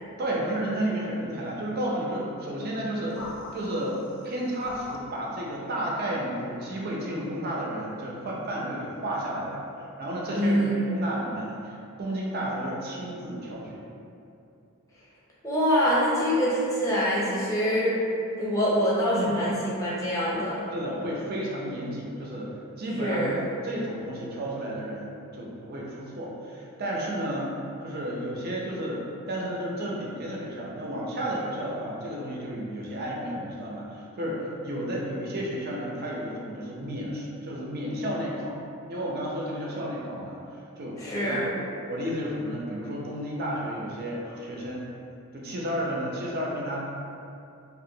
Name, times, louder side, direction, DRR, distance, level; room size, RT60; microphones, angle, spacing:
voice 1, 0.2-3.3 3.5-4.0 4.2-13.8 19.1-19.3 20.7-27.5 27.8-38.6 38.9-41.5 41.9-44.8 45.3-46.8, right 1 dB, 45° right, -3 dB, 0.4 m, -32 dB
sound 1, 3.1-5.2 6.1-6.4, left 2 dB, 75° left, 0.4 m, -43 dB
voice 2, 10.3-10.7 15.4-18.0 18.4-20.7 23.0-23.3 41.0-41.4, equal, 15° left, -8 dB, 0.5 m, -25 dB
2.8 x 2.3 x 2.6 m, 2.6 s
head